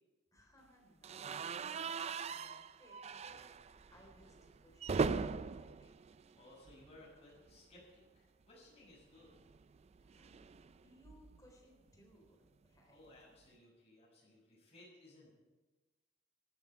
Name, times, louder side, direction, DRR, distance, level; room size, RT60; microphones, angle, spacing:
voice 1, 0.3-3.6 3.9-6.1 9.9-13.1, left 1 dB, 20° left, 1 dB, 3.7 m, -65 dB
sound 1, 1.0-7.1 7.4-7.6 7.8-7.9 9.2-11.5, right 4 dB, 35° right, 0.4 m, -41 dB
voice 2, 6.3-9.4 12.9-15.3, left 1 dB, 35° left, -5 dB, 6.3 m, -60 dB
18.0 x 13.0 x 4.5 m, 1.2 s
head